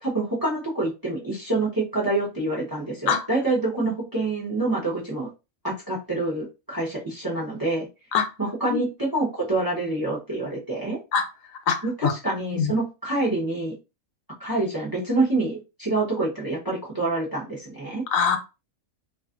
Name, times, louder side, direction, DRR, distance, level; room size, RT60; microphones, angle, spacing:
voice 1, 0.0-5.3 5.6-7.9 8.4-11.0 11.8-13.7 14.4-18.0, right 2 dB, 20° right, -4 dB, 0.7 m, -26 dB
voice 2, 11.7-12.1 12.5-12.7 18.1-18.4, left 7 dB, 75° left, 5 dB, 0.9 m, -23 dB
2.5 x 2.4 x 2.4 m, 0.28 s
omnidirectional pair, 1.4 m